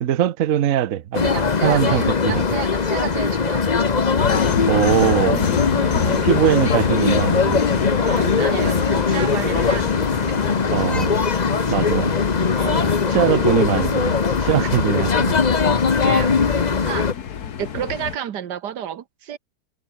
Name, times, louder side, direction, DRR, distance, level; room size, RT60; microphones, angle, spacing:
voice 1, 0.0-1.3 1.6-2.4 4.7-5.4 6.2-7.6 10.7-11.1 11.7-12.1 13.1-14.1 14.4-15.3, right 11 dB, 60° right, 1.1 m, -21 dB
sound 1, 1.1-17.1, left 5 dB, 30° left, 0.9 m, -20 dB
voice 2, 1.2-3.9 5.8-6.2 8.0-10.1 12.5-13.1 16.0-16.4 16.9-17.1 17.6-19.4, right 9 dB, 75° right, 1.7 m, -31 dB
sound 2, 4.2-18.2, left 8 dB, 65° left, 1.8 m, -28 dB
open air
omnidirectional pair, 1.8 m